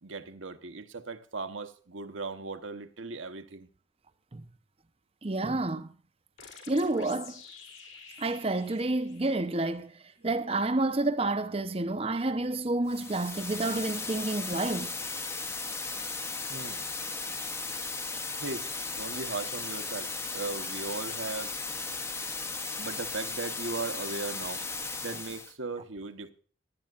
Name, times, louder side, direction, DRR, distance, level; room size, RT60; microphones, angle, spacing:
voice 1, 0.0-3.7 16.5-16.8 18.3-18.7 18.9-21.5 22.8-24.6 25.0-26.3, right 3 dB, 75° right, 1.2 m, -38 dB
voice 2, 5.2-5.9 6.7-7.4 8.2-9.9 10.2-14.9, right 2 dB, 30° right, 0.7 m, -29 dB
sound 1, 6.4-9.9, left 6 dB, 70° left, 3.7 m, -50 dB
sound 2, 12.9-25.5, left 4 dB, 15° left, 0.8 m, -36 dB
17.5 x 10.5 x 2.5 m
head